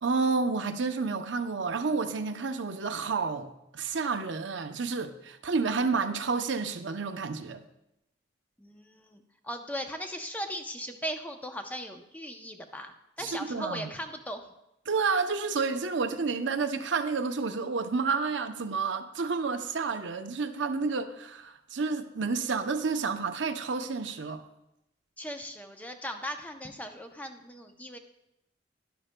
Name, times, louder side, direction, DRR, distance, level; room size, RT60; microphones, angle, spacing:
voice 1, 0.0-7.6 13.2-13.9 14.9-24.4, right 4 dB, 75° right, 8 dB, 0.6 m, -30 dB
voice 2, 8.6-14.4 25.2-28.0, equal, 10° left, 5 dB, 0.6 m, -38 dB
11.5 x 11.0 x 2.2 m, 0.85 s
head